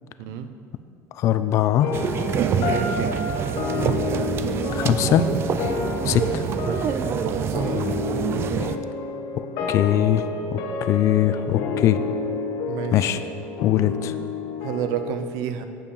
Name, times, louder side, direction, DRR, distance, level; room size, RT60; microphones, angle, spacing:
voice 1, 1.1-1.9 4.7-5.3 6.1-6.4 9.4-10.2 10.5-12.0 12.9-13.2 13.6-14.1, left 12 dB, 55° left, 12 dB, 0.5 m, -21 dB
sound 1, 1.8-15.1, left 4 dB, 70° left, 1.0 m, -30 dB
sound 2, 1.9-8.8, right 7 dB, 40° right, 0.4 m, -26 dB
voice 2, 2.6-3.2 7.2-7.9 12.7-13.1 14.6-15.7, right 8 dB, 75° right, 9 dB, 0.7 m, -31 dB
8.9 x 5.7 x 6.5 m, 2.4 s
cardioid pair, 125°, 6 cm